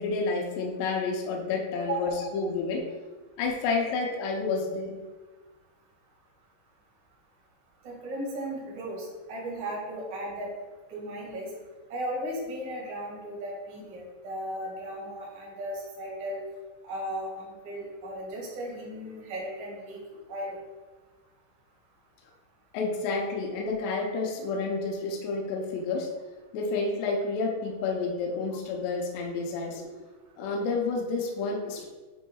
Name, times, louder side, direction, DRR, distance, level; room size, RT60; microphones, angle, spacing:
voice 1, 0.0-2.8 3.4-5.0 22.7-26.1 26.5-29.9 30.4-31.9, left 4 dB, 75° left, 0 dB, 2.9 m, -30 dB
voice 2, 7.8-10.5 10.9-11.5 11.9-16.4 16.8-20.0 20.3-20.6, right 1 dB, 45° right, -5 dB, 1.6 m, -36 dB
9.1 x 5.0 x 2.4 m, 1.3 s
omnidirectional pair, 5.2 m